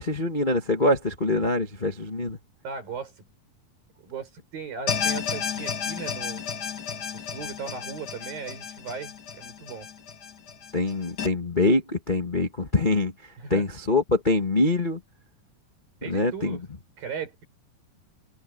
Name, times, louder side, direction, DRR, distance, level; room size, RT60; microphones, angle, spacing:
voice 1, 0.0-2.4 10.7-15.0 16.0-16.6, left 2 dB, 80° left, 0.4 m, -24 dB
voice 2, 2.6-3.3 4.0-6.4 7.1-9.9 13.4-13.6 16.0-16.6 17.0-17.4, right 5 dB, 85° right, 7.9 m, -37 dB
Horn Echo.R, 4.9-11.3, left 7 dB, 55° left, 1.1 m, -32 dB
open air
omnidirectional pair, 4.0 m